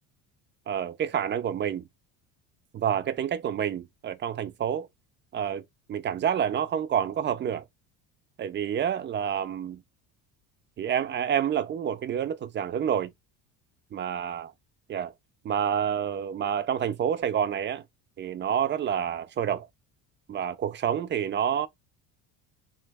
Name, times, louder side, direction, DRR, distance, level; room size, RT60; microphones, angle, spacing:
voice 1, 0.7-1.9 2.7-4.9 5.3-5.6 5.9-7.6 8.4-9.8 10.8-13.1 13.9-14.5 14.9-15.1 15.4-17.8 18.2-19.7 20.3-21.7, right 9 dB, 30° right, 0.4 m, -28 dB
3.2 x 2.1 x 3.4 m
cardioid pair, 125°, 39 cm